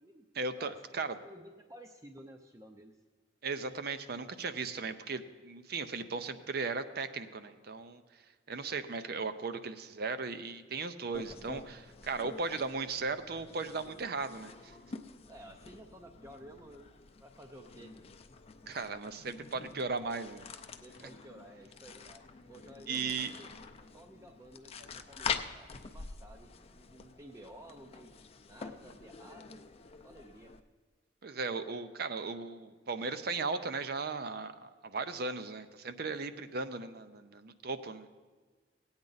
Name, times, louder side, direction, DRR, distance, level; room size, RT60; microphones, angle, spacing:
voice 1, 0.3-1.1 3.4-8.0 8.5-14.8 18.7-20.4 22.9-23.3 31.2-38.1, right 4 dB, 60° right, 11 dB, 0.6 m, -37 dB
voice 2, 1.2-3.0 15.3-18.0 20.8-23.5 23.9-28.1 28.5-29.6 30.0-30.5, right 1 dB, 15° right, 4 dB, 0.5 m, -53 dB
sound 1, 11.1-30.6, left 5 dB, 35° left, 0.5 m, -46 dB
17.0 x 8.8 x 4.0 m, 1.4 s
head